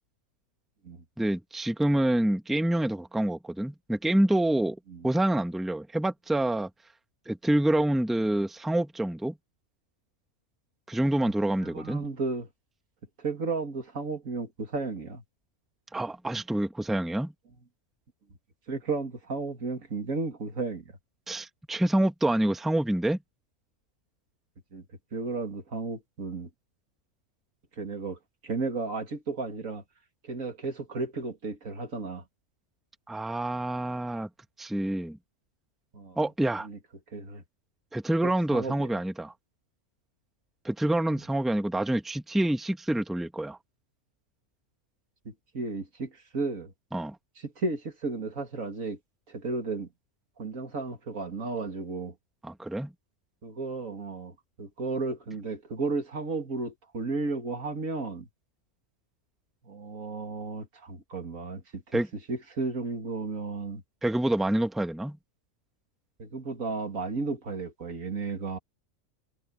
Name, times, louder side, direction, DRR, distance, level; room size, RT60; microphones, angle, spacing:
voice 1, 1.2-4.8 5.0-6.7 7.3-9.4 10.9-12.0 15.9-17.3 21.3-23.2 33.1-34.3 34.6-35.2 36.2-36.7 37.9-39.3 40.6-43.6 46.9-47.2 52.4-52.9 61.9-62.1 64.0-65.2, right 1 dB, ahead, 1.3 m, -27 dB
voice 2, 11.6-12.5 13.2-15.2 18.7-21.0 24.7-24.8 25.1-26.5 27.8-29.8 30.2-32.2 35.9-36.2 36.6-36.8 37.1-37.4 38.2-38.9 45.2-46.7 47.4-49.0 49.3-49.9 50.4-52.1 53.4-58.3 59.6-62.0 62.3-63.8 66.2-68.6, right 3 dB, 85° right, 2.8 m, -34 dB
omnidirectional pair, 1.4 m